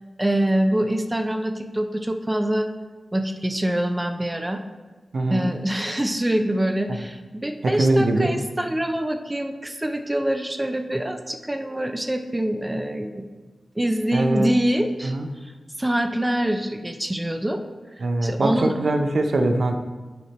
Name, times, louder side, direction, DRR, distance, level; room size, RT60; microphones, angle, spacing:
voice 1, 0.2-2.7 3.1-4.6 5.3-13.3 13.8-15.1 15.4-17.6 18.0-18.8, right 1 dB, 20° right, 6 dB, 0.6 m, -25 dB
voice 2, 5.1-5.5 7.6-8.3 14.1-14.5 15.0-15.3 18.0-19.7, right 2 dB, 70° right, 5 dB, 0.7 m, -22 dB
8.3 x 4.4 x 4.3 m, 1.3 s
cardioid pair, 60°, 0 cm